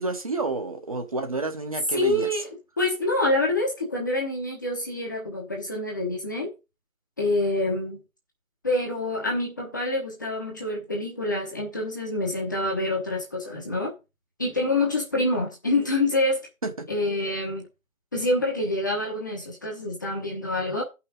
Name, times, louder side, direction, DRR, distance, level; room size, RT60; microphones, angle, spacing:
voice 1, 0.0-2.3 16.6-16.7, right 3 dB, 25° right, 1.1 m, -29 dB
voice 2, 1.9-2.5 2.8-6.5 7.2-8.0 8.6-13.9 14.4-16.5 16.9-17.6 18.1-20.8, left 2 dB, 15° left, 1.0 m, -26 dB
11.5 x 5.8 x 5.2 m
hypercardioid pair, 175°, 40 cm